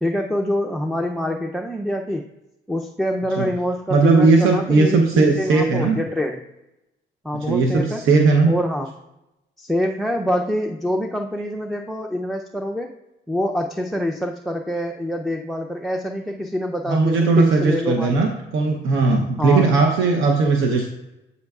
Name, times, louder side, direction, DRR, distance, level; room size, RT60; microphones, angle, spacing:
voice 1, 0.0-2.3 2.7-6.4 7.2-8.0 8.4-8.9 9.6-12.9 13.3-18.2 19.4-19.7, equal, ahead, 3 dB, 0.5 m, -25 dB
voice 2, 3.9-6.0 7.3-8.6 16.9-20.9, right 3 dB, 85° right, 2 dB, 0.8 m, -17 dB
8.2 x 6.4 x 2.4 m, 0.97 s
cardioid pair, 90°, 20 cm